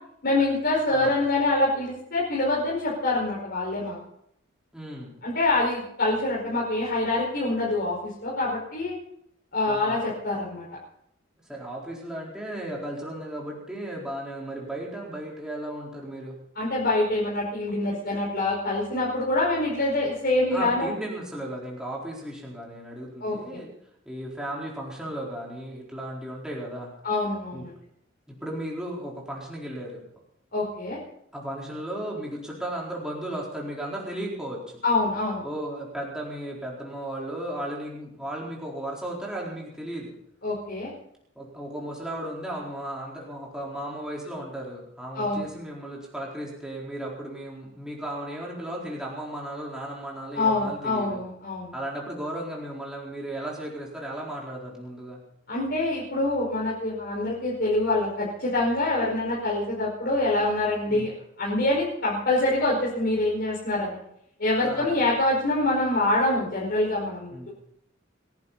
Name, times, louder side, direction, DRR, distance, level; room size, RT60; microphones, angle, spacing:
voice 1, 0.2-4.0 5.2-8.9 9.5-10.7 16.6-20.9 23.2-23.4 27.0-27.7 30.5-31.0 34.8-35.4 40.4-40.9 45.2-45.5 50.3-51.7 55.5-61.1 61.4-64.0 64.4-67.5, left 2 dB, 55° left, -6 dB, 5.3 m, -25 dB
voice 2, 4.7-5.2 9.6-10.0 11.5-16.4 20.5-23.7 24.1-26.9 27.5-27.6 28.3-30.0 31.3-34.8 35.4-40.2 41.4-51.2 51.7-55.2 60.8-61.1 64.6-64.9 67.3-67.5, right 1 dB, 5° right, -4 dB, 4.3 m, -35 dB
30.0 x 11.0 x 4.2 m, 0.75 s
head